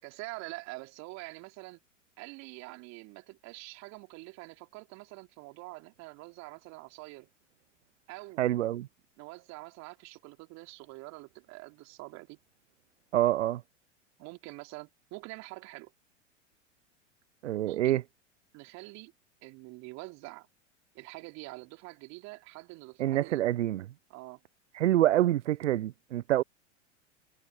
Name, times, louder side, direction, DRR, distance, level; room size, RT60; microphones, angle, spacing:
voice 1, 0.0-1.8 2.2-7.3 8.1-8.4 9.2-12.4 14.2-15.9 17.6-18.0 18.5-19.1 19.4-20.5 20.9-23.5 24.1-24.4, right 24 dB, 45° right, 3.7 m, -46 dB
voice 2, 8.4-8.9 13.1-13.6 17.4-18.0 23.0-23.9 24.7-26.4, right 13 dB, 70° right, 0.6 m, -26 dB
figure-of-eight pair, 90°, 37 cm